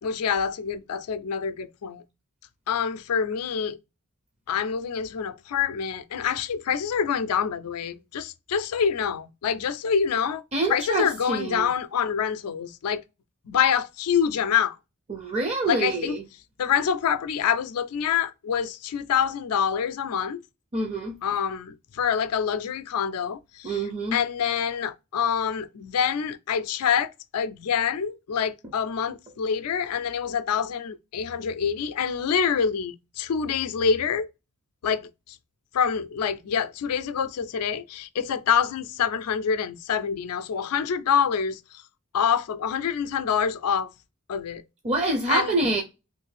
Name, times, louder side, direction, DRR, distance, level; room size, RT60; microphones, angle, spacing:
voice 1, 0.0-2.0 2.7-3.8 4.5-10.4 10.7-13.0 13.4-14.8 15.6-16.2 16.6-20.4 21.2-23.8 24.1-34.3 34.8-35.4 35.7-41.8 42.1-43.9 44.3-44.6 45.3-45.6, left 7 dB, 90° left, 0.4 m, -26 dB
voice 2, 10.5-11.7 15.1-16.2 20.7-21.1 23.6-24.2 44.8-45.8, right 2 dB, 30° right, 0.5 m, -26 dB
3.1 x 2.5 x 3.2 m
head